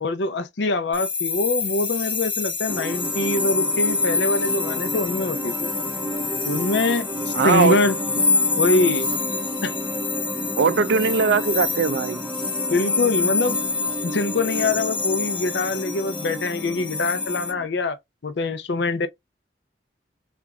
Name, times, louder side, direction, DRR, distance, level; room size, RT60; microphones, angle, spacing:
voice 1, 0.0-5.7 6.4-8.0 8.6-9.1 9.6-9.8 12.7-13.6 14.0-18.0 18.2-19.1, left 2 dB, 70° left, 0.6 m, -24 dB
sound 1, 0.9-17.5, left 4 dB, 25° left, 0.9 m, -27 dB
sound 2, 2.7-17.7, right 1 dB, 10° right, 0.6 m, -32 dB
voice 2, 7.3-7.8 10.6-12.2, right 5 dB, 65° right, 0.4 m, -20 dB
3.3 x 2.4 x 3.4 m
head